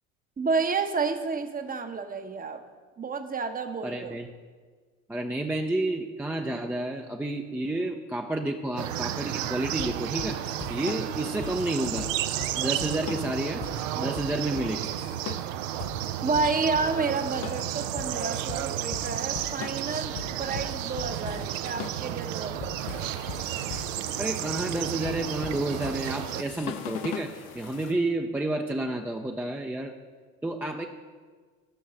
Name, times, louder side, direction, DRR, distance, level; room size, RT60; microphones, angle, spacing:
voice 1, 0.4-2.6 3.0-4.2 16.2-23.1, right 4 dB, 20° right, 8 dB, 0.9 m, -30 dB
voice 2, 3.8-4.3 5.1-10.4 10.7-12.1 12.5-13.6 14.0-14.9 24.2-27.3 27.5-29.9 30.4-30.9, right 2 dB, 5° right, 2 dB, 0.5 m, -30 dB
sound 1, 8.8-26.4, right 12 dB, 70° right, 0.6 m, -32 dB
sound 2, 9.8-27.3, left 9 dB, 50° left, 0.8 m, -40 dB
sound 3, 22.8-27.9, left 5 dB, 80° left, 1.2 m, -47 dB
11.5 x 6.4 x 5.2 m, 1.5 s
hypercardioid pair, 65°, 41 cm